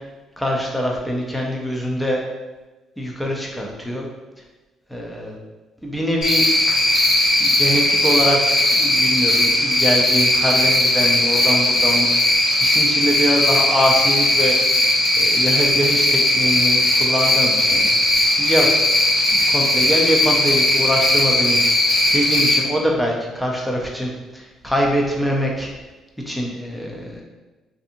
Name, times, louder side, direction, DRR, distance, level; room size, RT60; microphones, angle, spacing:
voice 1, 0.4-2.2 3.0-4.1 4.9-5.4 5.8-6.4 7.4-8.4 8.7-12.1 12.6-14.6 15.2-17.9 18.4-18.7 19.3-21.6 22.1-25.7 26.3-27.2, equal, 5° left, -2 dB, 0.5 m, -23 dB
Cricket, 6.2-22.6, left 1 dB, 55° left, 0.7 m, -17 dB
2.6 x 2.6 x 2.6 m, 1.2 s
cardioid pair, 110°, 0 cm